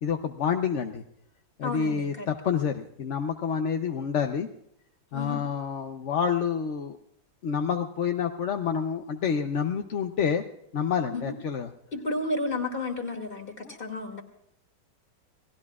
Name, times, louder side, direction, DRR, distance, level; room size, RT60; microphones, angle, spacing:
voice 1, 0.0-1.0 1.6-4.5 5.1-7.0 7.4-10.4 10.7-11.7 13.6-13.8, left 7 dB, 55° left, 6 dB, 0.9 m, -28 dB
voice 2, 1.6-2.3 5.1-5.4 11.1-11.3 11.9-14.2, left 2 dB, 30° left, 4 dB, 2.5 m, -32 dB
29.0 x 18.5 x 2.4 m, 0.77 s
omnidirectional pair, 1.9 m